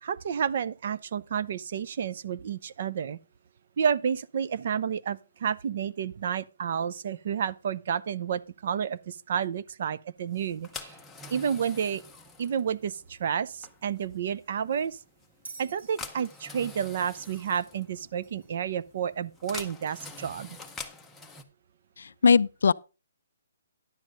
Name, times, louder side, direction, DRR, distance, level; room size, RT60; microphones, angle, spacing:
voice 1, 0.0-3.2 3.8-10.9 11.3-12.0 12.4-15.0 15.6-20.6, right 7 dB, 45° right, 0.6 m, -30 dB
sound 1, 10.3-21.4, left 4 dB, 5° left, 0.7 m, -46 dB
Bell, 15.4-18.6 19.8-19.9, right 4 dB, 65° right, 1.9 m, -50 dB
voice 2, 22.0-22.7, left 5 dB, 70° left, 0.4 m, -21 dB
10.5 x 7.3 x 3.7 m
hypercardioid pair, 170°, 0 cm